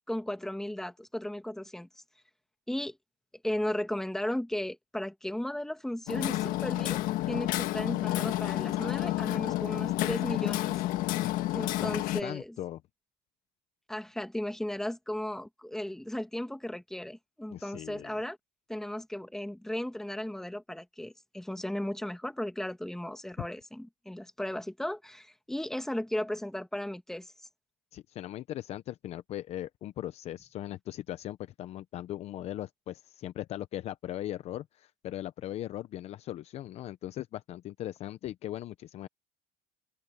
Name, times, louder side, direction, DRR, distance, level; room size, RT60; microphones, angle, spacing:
voice 1, 0.1-1.9 2.7-3.0 3.4-7.0 7.3-10.8 11.5-12.5 13.9-18.4 18.7-27.5, left 1 dB, 5° left, 1.7 m, -35 dB
Hammer, 6.1-12.2, left 16 dB, 60° left, 1.5 m, -30 dB
voice 2, 11.8-12.8 17.5-18.2 27.9-39.1, left 13 dB, 40° left, 0.7 m, -39 dB
open air
cardioid pair, 145°, 16 cm